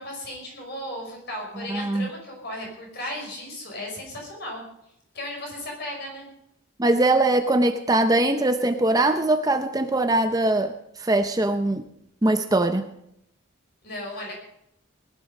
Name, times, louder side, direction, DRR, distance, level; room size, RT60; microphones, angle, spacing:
voice 1, 0.0-4.6 5.1-6.3 13.8-14.3, left 1 dB, 50° left, 0 dB, 5.6 m, -35 dB
voice 2, 1.7-2.1 6.8-10.7 11.0-11.8 12.2-12.8, right 2 dB, 15° right, 7 dB, 0.6 m, -21 dB
19.5 x 11.0 x 5.4 m, 0.77 s
head